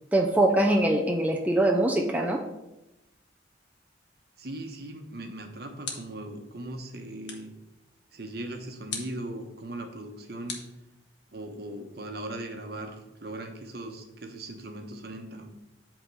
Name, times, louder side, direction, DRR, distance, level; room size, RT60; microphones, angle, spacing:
voice 1, 0.1-2.4, right 1 dB, 10° right, 2 dB, 0.6 m, -23 dB
voice 2, 4.4-7.5 8.1-10.6 11.3-15.5, right 1 dB, 60° right, 4 dB, 1.1 m, -39 dB
sound 1, 5.8-6.3 7.2-7.6 8.9-9.3 10.5-11.4, left 5 dB, 80° left, 1.4 m, -40 dB
8.1 x 3.7 x 6.8 m, 0.92 s
head